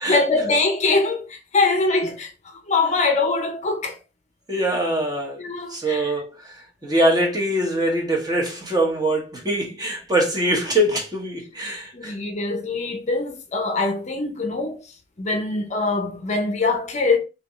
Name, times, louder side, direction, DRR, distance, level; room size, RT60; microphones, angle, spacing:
voice 1, 0.0-4.0 5.4-6.1 11.9-14.8 15.2-17.2, left 3 dB, 40° left, 0.6 m, -23 dB
voice 2, 4.5-5.4 5.7-6.6 6.8-12.1, right 1 dB, 20° right, 1.2 m, -23 dB
3.4 x 2.8 x 4.0 m
head